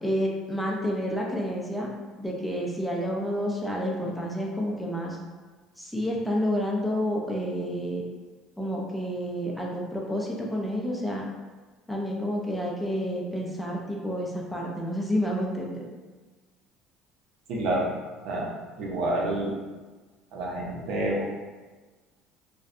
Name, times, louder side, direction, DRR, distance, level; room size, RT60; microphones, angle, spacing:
voice 1, 0.0-1.9 2.2-5.2 5.8-8.0 8.6-11.2 11.9-15.8, equal, 5° left, -2 dB, 0.4 m, -29 dB
voice 2, 17.5-17.9 18.2-19.6 20.3-21.2, right 1 dB, 65° right, -3 dB, 0.6 m, -28 dB
2.5 x 2.1 x 2.4 m, 1.3 s
supercardioid pair, 105°, 0 cm